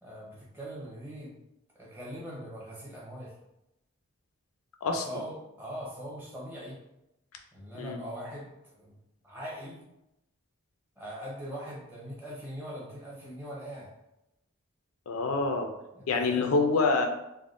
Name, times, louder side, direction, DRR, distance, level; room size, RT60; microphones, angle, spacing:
voice 1, 0.0-1.3 1.7-3.3 4.8-6.8 7.5-9.0 9.2-9.8 11.0-13.9 15.9-16.5, equal, 10° right, -5 dB, 0.7 m, -41 dB
voice 2, 4.8-5.2 7.8-8.0 15.1-15.7 16.1-17.1, left 3 dB, 75° left, 4 dB, 0.4 m, -26 dB
3.4 x 2.1 x 2.4 m, 0.86 s
head